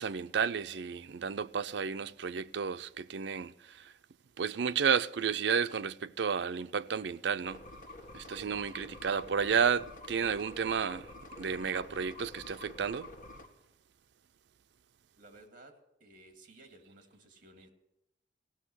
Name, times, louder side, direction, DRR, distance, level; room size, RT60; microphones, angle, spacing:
voice 1, 0.0-3.9 4.4-7.6 8.1-11.1 11.4-13.1, right 6 dB, 70° right, 0.5 m, -32 dB
sound 1, 7.4-13.5, left 2 dB, 50° left, 1.7 m, -48 dB
voice 2, 15.2-17.7, right 2 dB, 50° right, 2.1 m, -56 dB
16.0 x 6.3 x 10.0 m
head